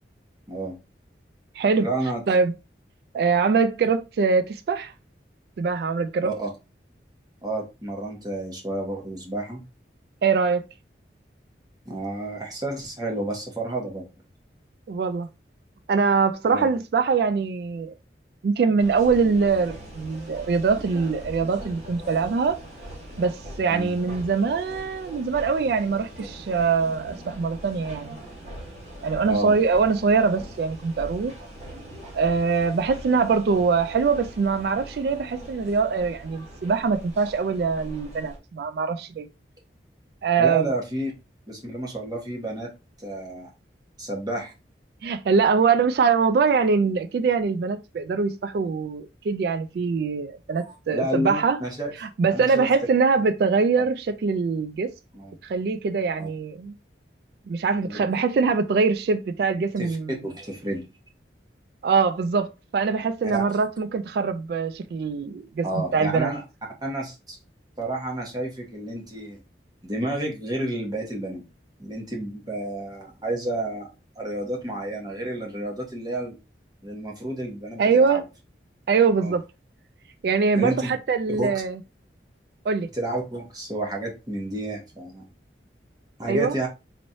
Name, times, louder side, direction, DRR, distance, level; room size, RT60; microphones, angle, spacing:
voice 1, 0.5-0.8 1.8-2.2 6.2-6.5 7.4-9.6 11.9-14.1 16.5-16.7 22.0-22.2 23.7-23.9 29.2-29.5 40.4-41.1 41.5-42.7 43.0-43.5 44.0-44.5 50.5-51.9 52.3-52.7 55.1-55.4 56.2-56.3 57.8-58.0 59.8-60.0 60.2-60.8 63.2-63.4 65.6-66.4 66.8-67.4 67.8-69.4 69.8-71.4 71.8-73.9 74.1-76.3 76.8-78.2 79.2-79.3 80.5-80.9 81.3-81.5 82.9-85.3 86.2-86.7, right 1 dB, 20° right, 1.1 m, -30 dB
voice 2, 1.6-1.9 2.3-2.5 3.1-4.9 5.6-6.3 10.2-10.6 14.9-15.3 15.9-17.9 18.4-22.6 23.2-28.2 29.0-31.3 32.1-39.3 40.2-40.7 45.0-51.6 52.0-54.9 55.4-56.7 57.5-60.1 61.8-66.3 77.8-78.2 78.9-79.4 80.2-81.8 82.7-82.9 86.3-86.6, right 5 dB, 60° right, 0.3 m, -23 dB
sound 1, 18.8-38.4, right 1 dB, 40° right, 1.6 m, -41 dB
4.2 x 3.1 x 2.6 m
head